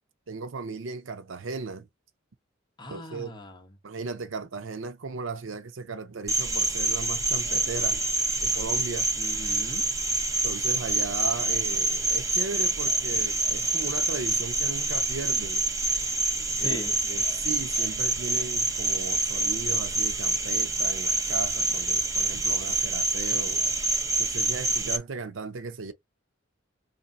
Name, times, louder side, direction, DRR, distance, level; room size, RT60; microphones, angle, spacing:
voice 1, 0.3-1.9 2.9-3.3 3.8-8.0 8.4-9.1 10.4-15.6 16.6-23.6 24.2-25.9, right 4 dB, 70° right, 0.6 m, -36 dB
voice 2, 2.8-3.8 9.2-9.8 16.6-17.0, left 1 dB, 25° left, 1.0 m, -39 dB
Cricket, 6.3-25.0, right 2 dB, 15° right, 0.6 m, -26 dB
3.3 x 2.6 x 4.1 m
head